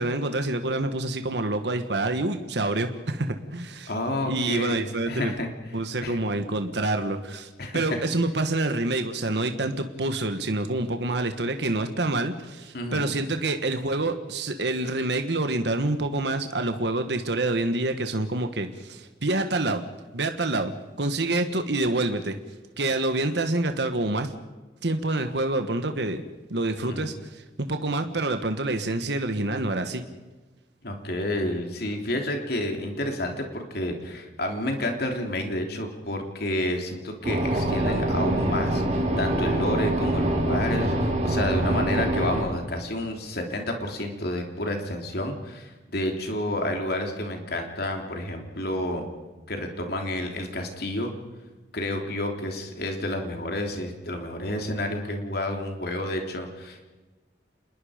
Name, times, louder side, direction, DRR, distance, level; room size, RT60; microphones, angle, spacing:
voice 1, 0.0-3.9 4.2-5.3 5.7-19.8 20.1-20.7 21.0-22.4 22.8-24.3 24.8-26.2 26.5-30.0, right 2 dB, 65° right, 7 dB, 1.4 m, -27 dB
voice 2, 3.9-5.5 6.0-6.2 7.6-8.0 12.7-13.1 26.8-27.1 30.8-49.1 49.5-51.1 51.7-56.8, left 1 dB, 60° left, 3 dB, 3.3 m, -30 dB
sound 1, 37.2-42.4, right 1 dB, 40° right, 5.0 m, -25 dB
28.0 x 21.0 x 5.1 m, 1.2 s
head